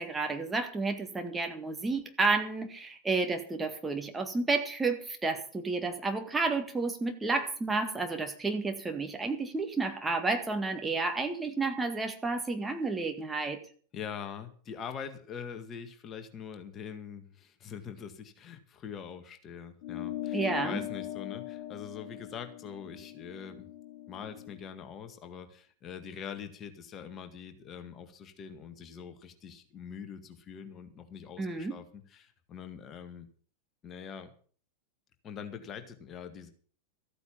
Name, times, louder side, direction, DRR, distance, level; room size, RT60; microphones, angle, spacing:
voice 1, 0.0-13.6 20.3-20.8 31.4-31.8, right 3 dB, 10° right, 5 dB, 1.9 m, -31 dB
voice 2, 13.9-23.7 24.1-33.3 33.8-34.3 35.2-36.5, left 7 dB, 30° left, 8 dB, 1.9 m, -43 dB
sound 1, 19.8-24.6, left 13 dB, 50° left, 0.8 m, -40 dB
14.0 x 9.2 x 7.3 m, 0.44 s
figure-of-eight pair, 90°, 0 cm